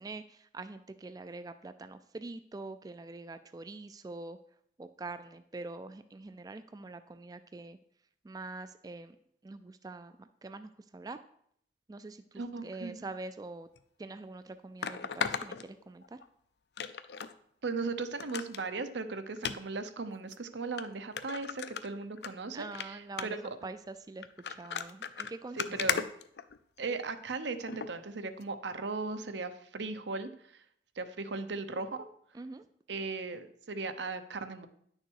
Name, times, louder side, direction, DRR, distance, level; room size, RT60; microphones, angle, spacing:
voice 1, 0.0-4.4 4.8-7.8 8.2-9.2 9.4-11.2 11.9-13.7 14.0-16.2 22.5-26.0 32.3-32.7, right 3 dB, 20° right, 11 dB, 0.3 m, -44 dB
voice 2, 12.4-13.1 17.6-23.6 25.6-26.0 26.8-30.6 31.0-32.1 32.9-34.7, right 3 dB, 75° right, 10 dB, 0.8 m, -37 dB
sound 1, 13.8-13.9 14.8-16.3 16.8-17.3 17.7-17.8 18.2-18.6 19.4-19.6 20.3-20.4 20.8-20.9 21.2-22.3 22.6-22.9 23.2-23.5 24.2-26.9 27.7-27.9 28.4-28.5, left 7 dB, 65° left, 0.5 m, -36 dB
10.0 x 6.6 x 4.7 m, 0.68 s
head